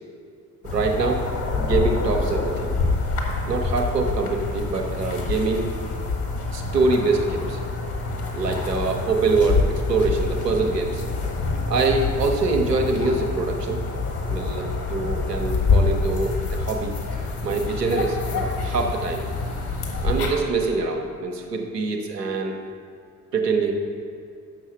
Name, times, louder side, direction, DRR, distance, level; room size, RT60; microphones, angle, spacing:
sound 1, 0.6-20.3, left 3 dB, 50° left, 1.6 m, -26 dB
voice 1, 0.6-1.3 1.6-2.7 3.4-5.7 6.5-7.6 8.3-11.0 11.7-13.8 14.2-16.9 17.4-19.3 20.0-22.6 23.3-23.7, right 3 dB, 90° right, 2 dB, 0.7 m, -24 dB
6.2 x 6.2 x 6.7 m, 2.5 s
figure-of-eight pair, 40°, 47 cm